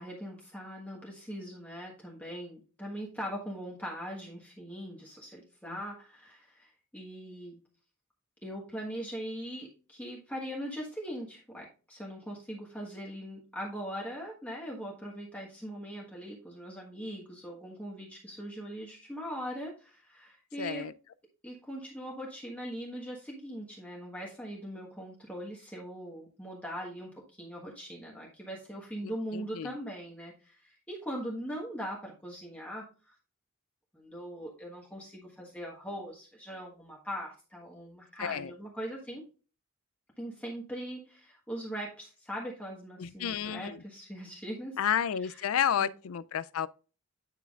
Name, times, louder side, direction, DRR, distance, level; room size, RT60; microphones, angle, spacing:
voice 1, 0.0-7.6 8.4-20.9 21.4-33.1 33.9-39.2 40.2-44.8 45.2-45.3 45.8-45.9, equal, 5° left, 1.4 m, -41 dB
voice 2, 20.6-20.9 29.0-29.8 38.2-38.5 43.0-43.8 44.8-46.7, left 8 dB, 75° left, 0.4 m, -31 dB
9.2 x 5.8 x 2.4 m
head